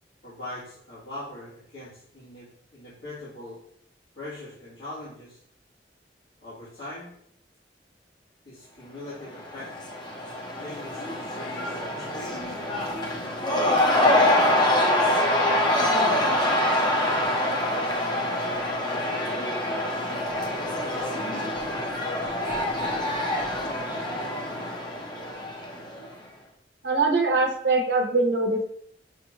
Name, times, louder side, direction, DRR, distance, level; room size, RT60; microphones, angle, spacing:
voice 1, 0.2-3.6 4.1-5.4 6.4-7.1 8.4-9.7 10.6-12.6 13.5-14.6 15.6-17.7 17.9-19.2, left 1 dB, 85° left, -12 dB, 1.6 m, -42 dB
Cheering / Crowd, 9.2-26.1, left 1 dB, 25° left, 0.7 m, -25 dB
voice 2, 26.8-28.6, right 3 dB, 75° right, 2 dB, 0.8 m, -23 dB
6.2 x 2.4 x 3.0 m, 0.68 s
head